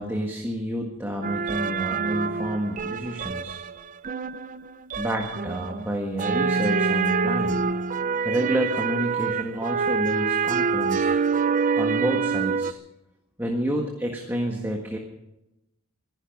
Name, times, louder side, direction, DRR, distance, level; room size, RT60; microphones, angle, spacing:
voice 1, 0.0-3.6 5.0-7.6 8.2-11.1 11.8-12.8 13.4-15.0, right 1 dB, 10° right, 1 dB, 1.6 m, -29 dB
sound 1, 1.2-12.7, right 5 dB, 35° right, 0.5 m, -26 dB
25.0 x 10.5 x 5.4 m, 0.92 s
head